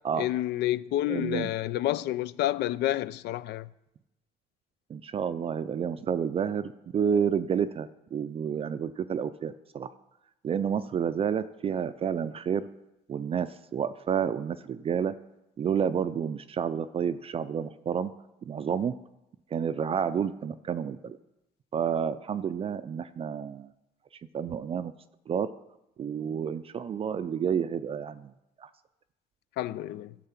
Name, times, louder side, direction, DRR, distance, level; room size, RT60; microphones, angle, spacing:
voice 1, 0.2-3.7 29.6-30.1, left 14 dB, 75° left, 0.4 m, -29 dB
voice 2, 1.1-1.5 4.9-9.9 10.4-12.7 13.1-15.1 15.6-18.1 18.4-18.9 19.5-21.2 21.7-23.7 24.3-24.9 25.3-25.5 26.0-28.3 28.6-28.7, right 7 dB, 35° right, 0.4 m, -30 dB
12.5 x 6.6 x 5.8 m
cardioid pair, 110°, 17 cm